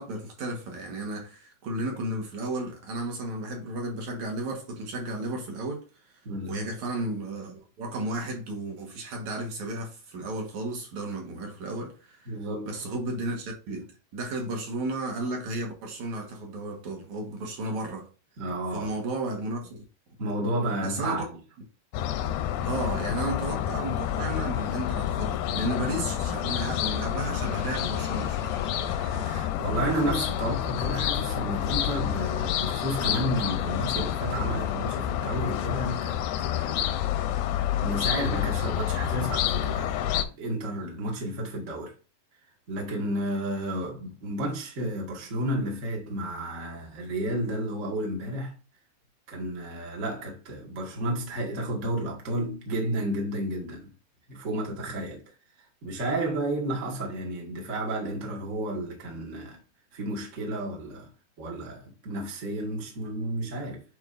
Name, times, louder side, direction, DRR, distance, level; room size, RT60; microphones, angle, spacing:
voice 1, 0.0-5.9 6.5-12.3 12.7-18.1 18.7-19.8 20.8-21.2 22.6-28.5, right 2 dB, 60° right, 2.1 m, -33 dB
voice 2, 6.2-6.7 12.3-12.8 18.4-18.9 20.2-21.3 28.8-37.0 37.6-41.9 42.7-48.5 49.3-53.9 54.3-55.2 55.6-59.6 59.9-61.1 61.4-63.8, right 1 dB, 80° right, 0.6 m, -32 dB
sound 1, 21.9-40.2, left 11 dB, 80° left, 2.1 m, -29 dB
sound 2, 27.1-35.6 36.0-36.2, left 4 dB, 55° left, 1.2 m, -45 dB
9.1 x 4.3 x 2.5 m
omnidirectional pair, 4.7 m